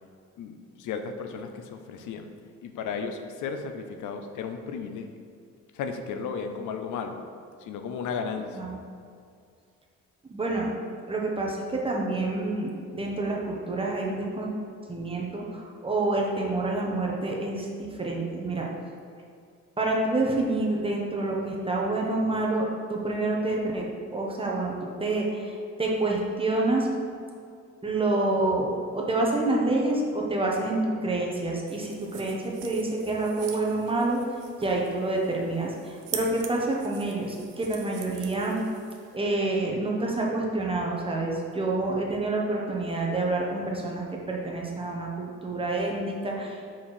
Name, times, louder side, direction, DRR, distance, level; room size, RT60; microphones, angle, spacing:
voice 1, 0.4-2.3 2.6-5.2 5.7-7.2 7.6-8.6, left 5 dB, 80° left, 6 dB, 0.7 m, -34 dB
voice 2, 10.3-10.7 11.1-14.5 14.9-18.7 19.8-26.9 27.8-34.2 34.6-38.6 39.1-46.6, right 2 dB, 20° right, -2 dB, 1.3 m, -28 dB
sound 1, 31.7-39.2, right 8 dB, 90° right, 0.7 m, -43 dB
5.9 x 4.7 x 4.7 m, 2.3 s
cardioid pair, 90°, 30 cm